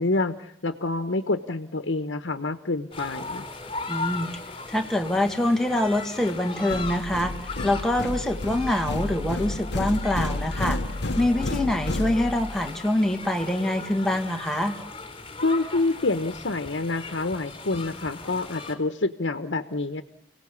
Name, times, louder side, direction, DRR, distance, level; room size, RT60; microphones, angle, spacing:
voice 1, 0.0-3.4 15.4-20.0, left 2 dB, 85° left, 8 dB, 1.1 m, -27 dB
sound 1, 2.9-18.7, left 3 dB, 30° left, 3.6 m, -38 dB
voice 2, 3.9-4.3 4.7-7.3 7.6-10.8 11.2-14.7, left 1 dB, 5° left, 4 dB, 2.0 m, -25 dB
sound 2, 6.7-12.7, left 2 dB, 65° left, 1.0 m, -31 dB
29.5 x 18.0 x 8.5 m, 0.80 s
head